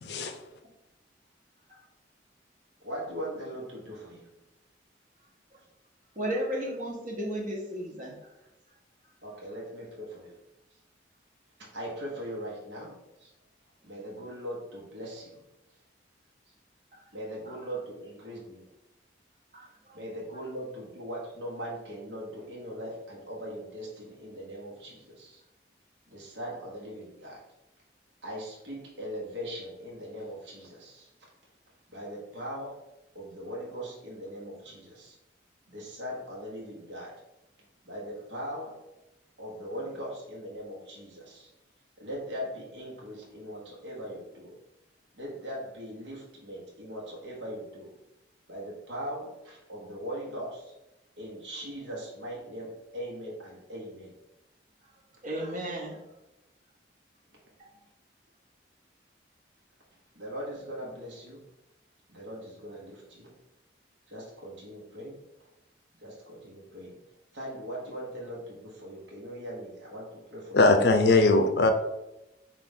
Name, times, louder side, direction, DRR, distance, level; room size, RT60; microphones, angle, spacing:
voice 1, 0.0-0.4 70.5-71.7, left 3 dB, 60° left, 7 dB, 0.5 m, -21 dB
voice 2, 2.8-4.3 9.2-10.4 11.6-13.3 13.8-15.4 17.1-18.7 19.9-25.4 26.1-27.4 28.2-31.1 31.9-32.8 33.1-35.2 35.7-37.1 37.8-38.8 39.4-41.5 42.0-44.6 45.2-47.9 48.5-50.7 51.2-54.1 60.1-61.4 62.1-63.3 64.1-65.2 66.0-67.0 67.3-71.2, equal, 75° right, -4 dB, 1.2 m, -40 dB
voice 3, 6.2-8.3 16.9-17.0 17.5-17.6 19.5-20.0 55.2-56.0 57.6-57.7, equal, 45° right, -1 dB, 1.0 m, -34 dB
5.3 x 2.5 x 3.6 m, 0.93 s
head